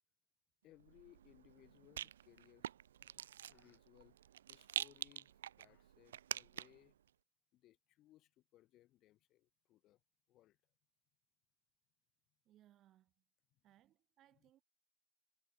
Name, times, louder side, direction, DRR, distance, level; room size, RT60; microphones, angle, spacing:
voice 1, 0.6-2.7 3.0-4.2 4.5-7.0 7.5-10.0 10.3-10.6 13.5-13.6 14.4-14.5, left 15 dB, 45° left, 1.9 m, -67 dB
Rattle, 0.8-6.9, right 10 dB, 85° right, 0.4 m, -47 dB
voice 2, 12.4-13.2 13.6-14.6, right 13 dB, 40° right, 4.2 m, -69 dB
hypercardioid pair, 105°, 0 cm